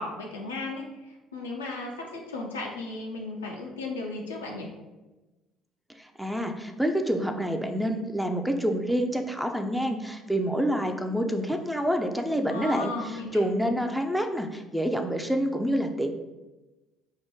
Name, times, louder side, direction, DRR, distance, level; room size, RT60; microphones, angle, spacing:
voice 1, 0.0-4.7 12.5-13.5, left 2 dB, 80° left, 0 dB, 0.4 m, -35 dB
voice 2, 6.0-12.9 13.3-16.1, equal, 5° right, 5 dB, 0.5 m, -27 dB
3.6 x 2.1 x 4.4 m, 1.1 s
figure-of-eight pair, 55°, 0 cm